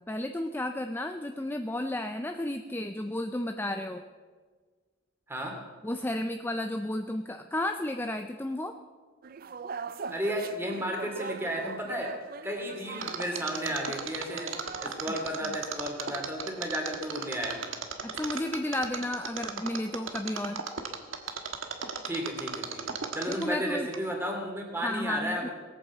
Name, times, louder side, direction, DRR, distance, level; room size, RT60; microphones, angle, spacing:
voice 1, 0.0-4.0 5.8-8.8 18.0-20.6 23.3-23.9 24.8-25.5, left 1 dB, 10° left, 6 dB, 0.5 m, -33 dB
sound 1, 9.2-15.5, right 5 dB, 45° right, 0.5 m, -42 dB
voice 2, 10.1-12.1 12.4-17.6 22.0-25.5, equal, 10° right, 1 dB, 2.6 m, -33 dB
Mechanisms, 13.0-23.6 23.9-24.0, right 6 dB, 80° right, 1.4 m, -35 dB
18.5 x 9.0 x 7.4 m, 1.5 s
head